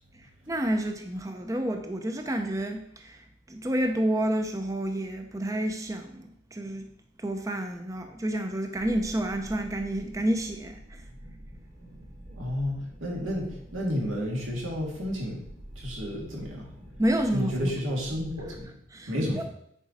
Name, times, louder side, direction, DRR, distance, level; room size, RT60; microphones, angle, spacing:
voice 1, 0.1-6.9 7.2-11.0 17.0-17.7 18.9-19.4, right 1 dB, 15° right, 0.5 m, -30 dB
sound 1, 8.7-18.6, equal, 40° right, 2.5 m, -47 dB
voice 2, 12.3-15.4 15.8-16.7 17.3-18.6 19.1-19.4, equal, 90° right, 2.6 m, -31 dB
9.4 x 4.8 x 4.1 m
head